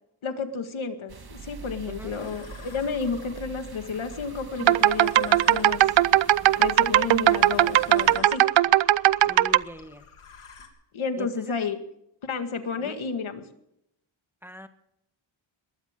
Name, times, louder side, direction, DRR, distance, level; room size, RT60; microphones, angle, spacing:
voice 1, 0.2-5.8 6.5-8.4 10.9-11.8 12.2-13.4, left 5 dB, 70° left, 7 dB, 2.0 m, -31 dB
sound 1, 1.1-8.2, right 5 dB, 50° right, 1.7 m, -44 dB
sound 2, 2.1-10.7, left 5 dB, 90° left, 3.2 m, -49 dB
sound 3, 4.6-9.6, right 13 dB, 65° right, 0.5 m, -19 dB
voice 2, 9.2-10.1 11.2-11.5 12.8-13.0 14.4-14.7, equal, 5° right, 8 dB, 1.3 m, -41 dB
22.0 x 16.5 x 3.7 m, 0.79 s
wide cardioid pair, 115°, 49 cm